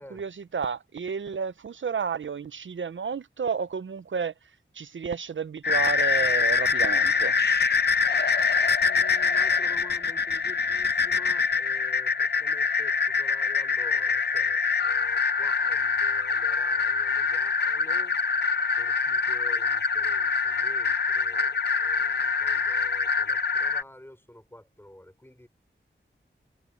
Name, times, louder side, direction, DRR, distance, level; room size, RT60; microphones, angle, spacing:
voice 1, 0.0-4.3 4.7-7.4, right 6 dB, 70° right, 0.6 m, -31 dB
sound 1, 5.6-23.8, left 5 dB, 55° left, 0.7 m, -25 dB
voice 2, 8.8-18.2 18.7-25.5, left 1 dB, 10° left, 5.4 m, -49 dB
wide cardioid pair, 85°, 20 cm